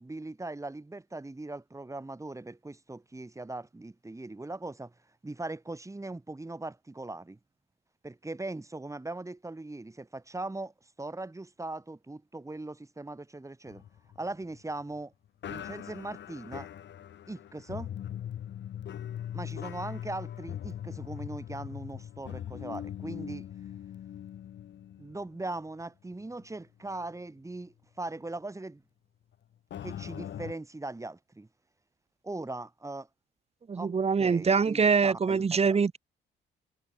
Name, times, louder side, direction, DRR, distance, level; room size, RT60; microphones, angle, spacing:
voice 1, 0.0-4.9 5.2-7.4 8.0-13.8 14.2-15.1 15.5-16.7 17.3-17.9 19.3-23.5 25.0-28.8 29.8-31.5 32.2-33.1 33.7-33.9 34.2-35.4, right 2 dB, 15° right, 6.4 m, -40 dB
sound 1, 13.7-15.0 15.4-25.8 26.1-26.3 26.9-27.0 29.7-30.5, left 10 dB, 65° left, 2.1 m, -41 dB
voice 2, 33.7-36.0, right 5 dB, 30° right, 1.2 m, -24 dB
cardioid pair, 90°, 20 cm